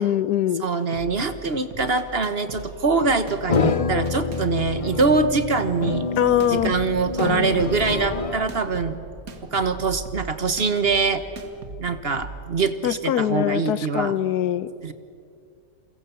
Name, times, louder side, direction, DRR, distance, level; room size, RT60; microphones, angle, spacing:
voice 1, 0.0-0.6 6.2-6.7 12.8-14.7, left 10 dB, 85° left, 17 dB, 1.4 m, -22 dB
voice 2, 0.6-6.1 6.5-9.0 9.5-11.2 11.8-14.2 14.8-14.9, right 4 dB, 40° right, 11 dB, 1.4 m, -23 dB
sound 1, 0.7-12.4, right 3 dB, 65° right, 2.2 m, -39 dB
sound 2, 3.5-8.5, left 4 dB, 40° left, 0.4 m, -27 dB
Gunshot gunfire, 6.5-13.1, right 1 dB, 10° right, 3.3 m, -41 dB
30.0 x 23.0 x 7.1 m, 2.3 s
omnidirectional pair, 1.6 m